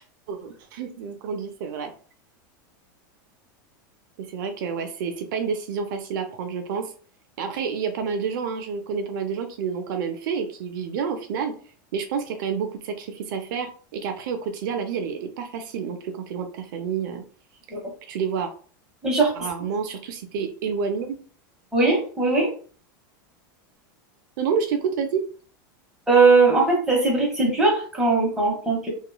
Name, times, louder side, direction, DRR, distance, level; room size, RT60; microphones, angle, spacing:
voice 1, 0.3-1.9 4.2-6.9 7.4-11.6 11.9-17.2 18.1-18.5 19.4-21.2 24.4-25.2, right 6 dB, 70° right, 6 dB, 0.5 m, -29 dB
voice 2, 21.7-22.5 26.1-28.9, right 3 dB, 5° right, -3 dB, 1.1 m, -19 dB
2.9 x 2.4 x 2.2 m, 0.42 s
supercardioid pair, 140°, 11 cm